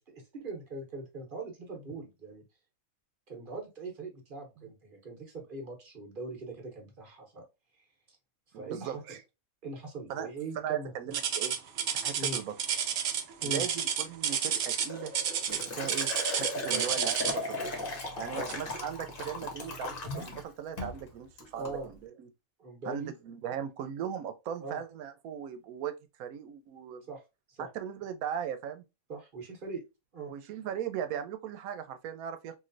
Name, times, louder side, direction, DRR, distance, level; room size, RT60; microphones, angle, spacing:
voice 1, 0.1-2.4 3.3-7.4 7.8-7.9 8.5-9.0 9.6-10.9 12.1-12.4 13.4-13.7 16.7-16.9 18.3-18.5 21.5-21.9 22.6-23.1 24.6-24.8 27.1-27.2 27.5-27.7 29.1-29.8 30.1-30.3, right 3 dB, 40° right, 1.0 m, -41 dB
voice 2, 8.5-9.2 10.1-10.3 10.6-11.5 12.0-12.5 13.4-15.1 15.5-17.6 18.2-22.3 22.8-27.0 27.6-28.8 30.3-32.6, right 9 dB, 85° right, 1.0 m, -38 dB
sound 1, 11.1-17.5 18.5-18.7 19.3-19.4 20.1-20.2, right 8 dB, 65° right, 0.6 m, -30 dB
Liquid, 14.9-20.4 20.8-21.0 21.4-21.8, left 2 dB, 45° left, 0.9 m, -37 dB
3.1 x 2.5 x 2.5 m
omnidirectional pair, 1.5 m